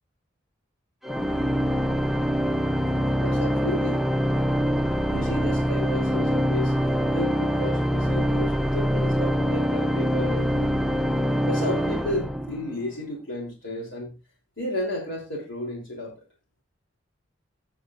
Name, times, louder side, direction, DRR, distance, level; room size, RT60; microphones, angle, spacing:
Organ, 1.0-12.9, equal, ahead, 0.4 m, -24 dB
voice 1, 3.2-4.0 5.1-6.7 7.1-10.7 11.4-14.1 14.6-16.1, left 1 dB, 75° left, -1 dB, 3.3 m, -33 dB
16.0 x 7.2 x 2.5 m, 0.28 s
head